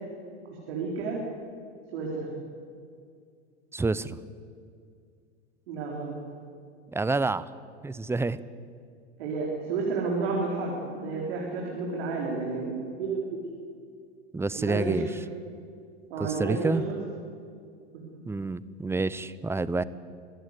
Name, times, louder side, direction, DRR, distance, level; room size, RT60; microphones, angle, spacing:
voice 1, 0.5-1.2 1.9-2.3 5.7-6.2 9.2-13.4 14.5-15.0 16.1-17.0 17.9-18.0, right 4 dB, 70° right, -2 dB, 4.6 m, -31 dB
voice 2, 3.7-4.2 6.9-7.5 7.8-8.4 14.3-15.1 16.2-16.8 18.3-19.8, right 3 dB, 10° right, 17 dB, 0.7 m, -28 dB
25.5 x 14.0 x 8.4 m, 2.3 s
hypercardioid pair, 100°, 33 cm